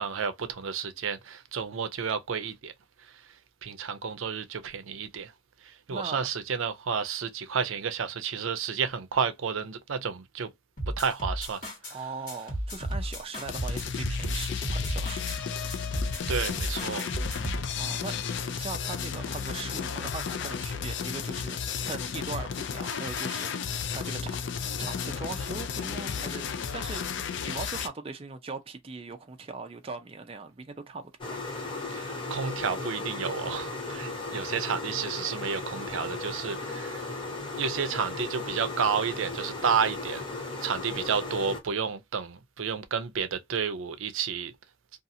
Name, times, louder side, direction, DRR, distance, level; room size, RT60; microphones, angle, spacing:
voice 1, 0.0-2.7 3.6-5.3 5.9-10.5 11.0-11.6 16.3-17.1 31.9-37.0 37.5-40.3 40.6-44.5, right 6 dB, 80° right, 0.5 m, -31 dB
voice 2, 5.9-6.3 11.9-15.5 17.7-18.2 18.5-24.4 24.8-27.0 27.4-31.4, right 4 dB, 30° right, 0.4 m, -40 dB
sound 1, 10.8-11.9 12.3-15.4 15.7-17.6, equal, 40° left, 1.4 m, -33 dB
sound 2, 13.4-27.9, left 6 dB, 60° left, 0.4 m, -33 dB
sound 3, 31.2-41.6, left 2 dB, 25° left, 0.7 m, -36 dB
2.7 x 2.4 x 2.6 m
head